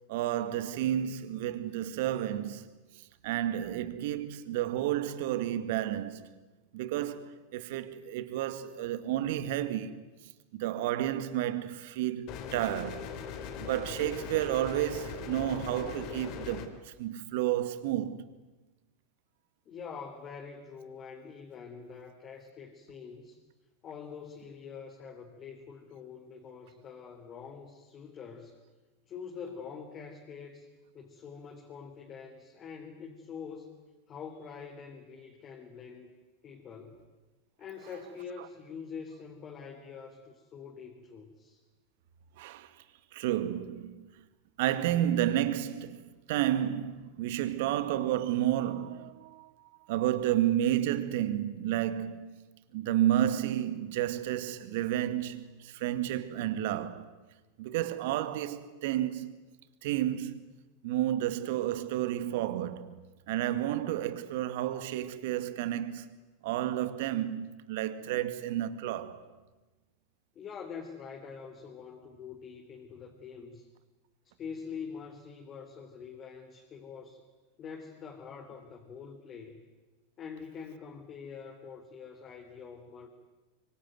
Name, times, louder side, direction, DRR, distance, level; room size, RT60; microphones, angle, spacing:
voice 1, 0.1-2.6 2.9-6.3 6.7-10.0 10.5-13.1 13.6-18.3 42.4-42.7 43.1-44.1 44.6-49.5 49.9-52.4 52.7-57.1 57.6-59.3 59.8-60.5 60.8-63.0 63.3-66.1 66.4-69.3, right 12 dB, 65° right, 2.0 m, -31 dB
sound 1, 12.3-16.7, left 7 dB, 50° left, 3.5 m, -40 dB
voice 2, 19.7-23.4 23.8-28.6 29.1-30.7 30.9-33.8 34.1-36.1 36.4-37.0 37.6-41.6 70.4-73.7 74.2-77.2 77.6-79.6 80.2-83.1, left 6 dB, 35° left, 3.6 m, -45 dB
25.5 x 24.5 x 9.5 m
hypercardioid pair, 100°, 0 cm